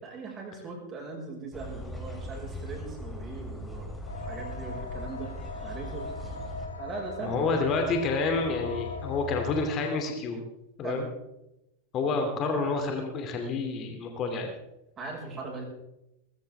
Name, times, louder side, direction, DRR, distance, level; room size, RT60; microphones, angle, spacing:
voice 1, 0.0-5.3 5.6-6.1 6.8-7.7 10.8-11.1 12.1-12.2 15.0-15.6, right 4 dB, 25° right, 0 dB, 5.4 m, -40 dB
sound 1, 1.5-6.7, left 1 dB, 10° left, 3.5 m, -40 dB
sound 2, 4.1-9.6, left 3 dB, 75° left, 2.0 m, -39 dB
voice 2, 7.2-10.4 10.8-11.1 11.9-14.5, left 3 dB, 30° left, 4 dB, 2.6 m, -29 dB
20.0 x 16.0 x 3.5 m, 0.91 s
figure-of-eight pair, 90°, 0 cm